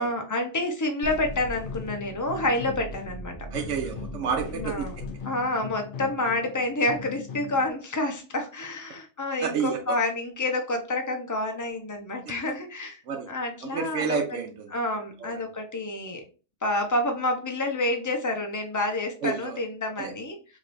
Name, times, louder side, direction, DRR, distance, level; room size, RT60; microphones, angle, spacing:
voice 1, 0.0-3.4 4.5-4.9 5.2-13.0 13.3-14.2 14.7-16.2 16.6-20.4, left 2 dB, 20° left, 4 dB, 0.6 m, -28 dB
sound 1, 1.0-7.7, left 3 dB, 55° left, 0.8 m, -38 dB
voice 2, 3.5-4.9 9.4-10.0 12.4-12.5 13.1-13.3 13.6-14.7 15.2-15.4 19.2-19.6 20.0-20.1, right 6 dB, 90° right, 3 dB, 1.1 m, -30 dB
4.7 x 2.9 x 2.6 m, 0.35 s
omnidirectional pair, 1.2 m